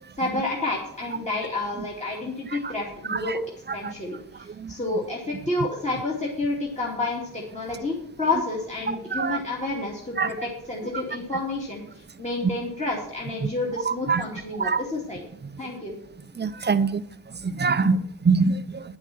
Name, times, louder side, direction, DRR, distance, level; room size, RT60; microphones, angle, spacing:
voice 1, 0.2-3.4 3.7-11.8 12.2-15.2 15.6-15.9, left 2 dB, 20° left, -3 dB, 2.5 m, -29 dB
voice 2, 8.9-9.4 10.2-10.3 13.4-13.5 13.9-14.2 14.6-14.8 16.4-17.0 17.4-18.8, right 4 dB, 25° right, 14 dB, 0.6 m, -24 dB
9.6 x 8.2 x 6.1 m, 0.70 s
wide cardioid pair, 100°, 39 cm